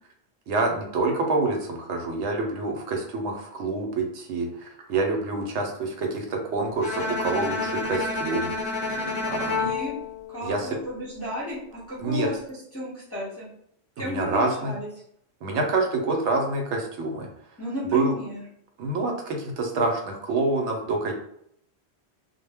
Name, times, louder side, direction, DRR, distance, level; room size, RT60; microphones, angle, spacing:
voice 1, 0.5-8.5 9.3-9.7 10.4-10.7 12.0-12.3 14.0-14.7 15.4-17.3 17.9-18.2 18.8-21.1, right 3 dB, 80° right, 2 dB, 0.9 m, -27 dB
Bowed string instrument, 6.8-11.0, left 3 dB, 75° left, 0.8 m, -29 dB
voice 2, 9.6-9.9 10.3-13.5 14.0-14.9 17.6-18.4, left 1 dB, 15° left, -7 dB, 0.6 m, -33 dB
2.1 x 2.1 x 3.3 m, 0.70 s
omnidirectional pair, 1.2 m